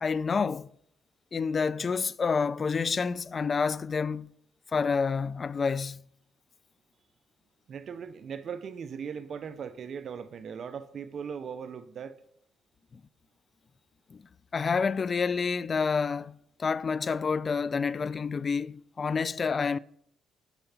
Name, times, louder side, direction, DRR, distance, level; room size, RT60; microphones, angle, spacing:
voice 1, 0.0-0.7 1.3-4.3 4.7-6.0 12.9-13.0 14.1-14.2 14.5-19.8, left 5 dB, 40° left, 0.3 m, -28 dB
voice 2, 7.7-12.2, right 7 dB, 55° right, 0.5 m, -39 dB
6.9 x 5.8 x 5.6 m
cardioid pair, 90°, 0 cm